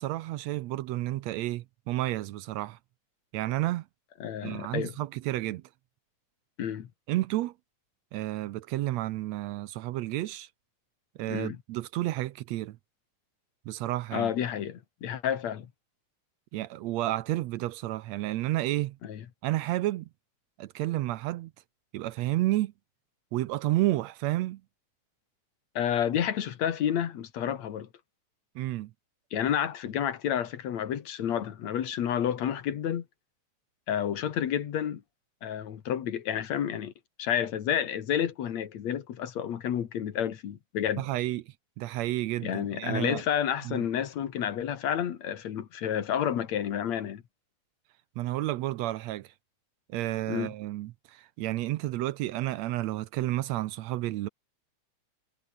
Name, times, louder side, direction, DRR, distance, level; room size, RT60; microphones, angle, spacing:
voice 1, 0.0-2.8 3.3-3.9 4.4-5.6 7.1-7.5 8.1-10.5 11.2-12.8 13.7-14.3 16.5-19.0 19.4-20.1 20.6-21.5 21.9-22.7 23.3-24.6 28.6-28.9 41.0-43.2 43.7-43.9 48.2-49.3 49.9-54.3, right 16 dB, 75° right, 1.8 m, -31 dB
voice 2, 4.2-4.9 6.6-6.9 11.3-11.6 14.1-15.7 19.0-19.2 25.7-27.9 29.3-33.0 33.9-35.0 35.4-36.9 37.2-41.1 42.4-47.2 50.3-50.5, left 9 dB, 70° left, 2.9 m, -30 dB
omnidirectional pair, 3.3 m